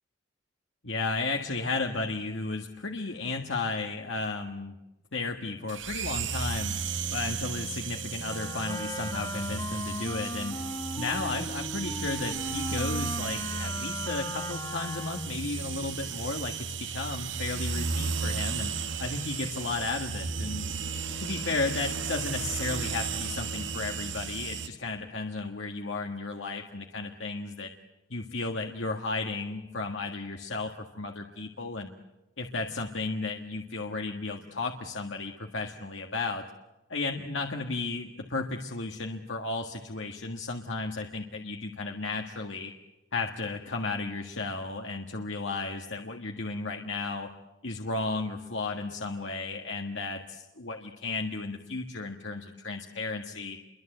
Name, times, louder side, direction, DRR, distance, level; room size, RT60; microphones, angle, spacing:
voice 1, 0.8-4.8 5.1-6.7 7.1-10.6 11.0-18.7 19.0-20.7 21.2-27.7 28.1-31.9 32.4-36.4 36.9-42.7 43.1-47.3 47.6-53.6, left 3 dB, 85° left, 2 dB, 1.7 m, -34 dB
sound 1, 5.7-24.7, right 6 dB, 80° right, 1.7 m, -34 dB
Wind instrument woodwind instrument, 8.2-15.4, left 1 dB, 20° left, 1.5 m, -38 dB
29.0 x 23.5 x 8.0 m, 1.0 s
head